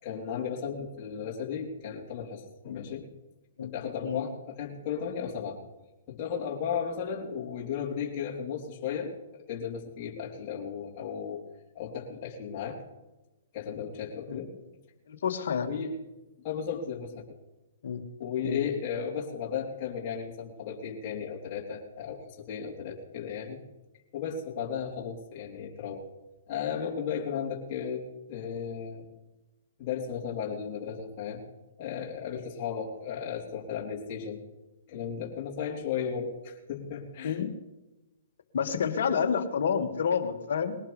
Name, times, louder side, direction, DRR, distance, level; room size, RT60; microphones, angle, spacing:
voice 1, 0.0-3.1 3.6-5.6 6.1-11.4 11.7-12.8 13.5-14.6 15.7-15.9 16.4-17.2 18.2-23.6 24.1-26.1 26.5-29.1 29.8-31.4 31.8-34.4 34.9-37.4, left 7 dB, 35° left, -5 dB, 3.7 m, -35 dB
voice 2, 15.1-15.7 17.8-18.0 18.4-18.6 37.2-37.5 38.5-40.7, left 7 dB, 65° left, 5 dB, 2.2 m, -29 dB
21.5 x 18.0 x 3.5 m, 1.0 s
hypercardioid pair, 130°, 0 cm